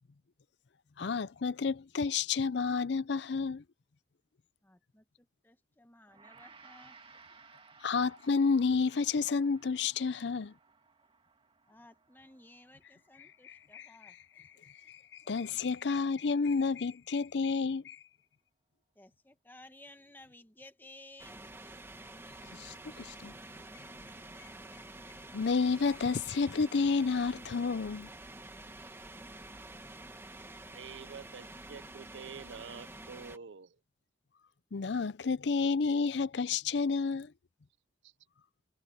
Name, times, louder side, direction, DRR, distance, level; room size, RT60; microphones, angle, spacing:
voice 1, 1.0-3.6 7.8-10.5 13.4-14.1 14.9-15.0 15.3-18.0 22.6-23.3 25.3-28.1 34.7-37.3, left 4 dB, 70° left, 0.5 m, -30 dB
voice 2, 4.6-7.0 11.7-14.2 15.2-15.6 19.0-21.4 23.6-23.7 24.2-24.3, left 2 dB, 10° left, 1.1 m, -56 dB
Gong, 6.1-15.5, right 4 dB, 30° right, 2.4 m, -60 dB
sound 1, 21.2-33.4, right 2 dB, 15° right, 1.4 m, -48 dB
voice 3, 30.7-33.8 38.0-38.1, right 6 dB, 90° right, 0.6 m, -47 dB
head